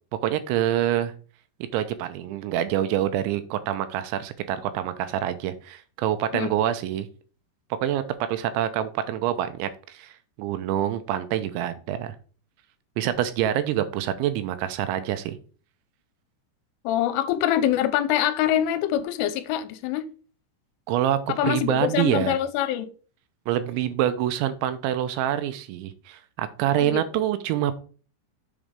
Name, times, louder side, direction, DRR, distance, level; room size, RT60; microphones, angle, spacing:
voice 1, 0.2-1.1 1.7-7.1 7.8-8.0 8.3-12.2 13.0-15.4 20.9-22.4 23.5-27.8, right 11 dB, 80° right, 2.9 m, -26 dB
voice 2, 16.8-20.0 21.3-22.9 26.8-27.2, left 11 dB, 85° left, 3.1 m, -25 dB
7.4 x 4.0 x 5.0 m
omnidirectional pair, 5.6 m